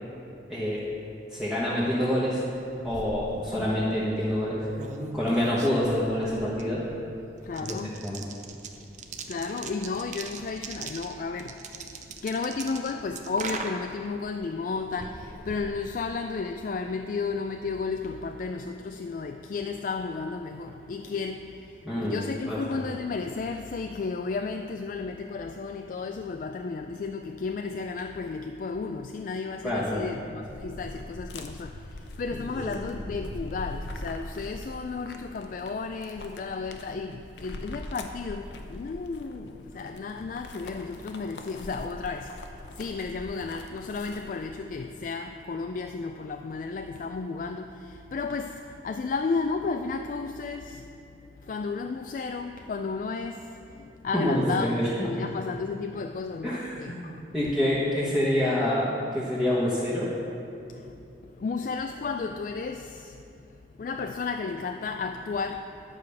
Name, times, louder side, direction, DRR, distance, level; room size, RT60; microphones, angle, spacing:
voice 1, 0.5-0.8 1.3-2.4 2.8-4.6 5.1-6.8 7.7-7.8 8.0-8.2 21.8-22.6 29.6-30.0 32.6-32.7 54.1-55.1 56.4-56.6 56.9-60.1, left 1 dB, ahead, -9 dB, 1.1 m, -27 dB
sound 1, 2.5-16.5, right 4 dB, 45° right, 0.6 m, -41 dB
voice 2, 3.5-3.8 7.4-8.1 9.1-57.2 60.7-65.8, left 4 dB, 50° left, 5 dB, 0.3 m, -33 dB
sound 2, 30.4-44.5, left 1 dB, 80° left, 0.7 m, -42 dB
10.5 x 4.9 x 6.8 m, 2.6 s
head